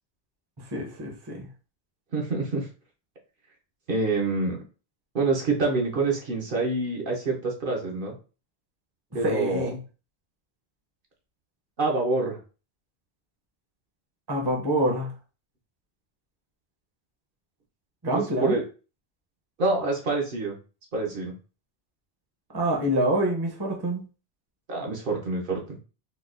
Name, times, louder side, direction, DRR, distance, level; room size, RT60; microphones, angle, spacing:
voice 1, 0.7-1.5 9.1-9.8 14.3-15.1 18.0-18.6 22.5-24.0, right 1 dB, 25° right, 1 dB, 0.7 m, -26 dB
voice 2, 2.1-2.7 3.9-4.6 5.1-8.2 9.1-9.7 11.8-12.4 18.1-18.6 19.6-20.6 20.9-21.3 24.7-25.8, right 3 dB, 60° right, 0 dB, 0.9 m, -26 dB
4.0 x 2.3 x 2.5 m, 0.35 s
omnidirectional pair, 1.1 m